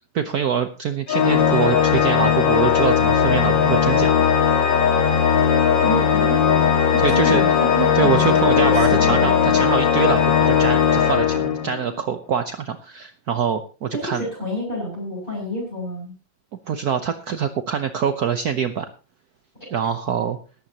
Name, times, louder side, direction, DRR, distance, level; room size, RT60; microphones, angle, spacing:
voice 1, 0.1-4.3 7.0-7.6 7.9-14.3 16.7-18.9 19.7-20.4, right 7 dB, 55° right, 8 dB, 1.3 m, -24 dB
Organ, 1.1-12.0, left 7 dB, 70° left, 2.2 m, -18 dB
voice 2, 5.8-9.6 13.9-16.1, left 1 dB, 25° left, -5 dB, 7.7 m, -28 dB
18.0 x 14.5 x 2.9 m, 0.33 s
omnidirectional pair, 2.1 m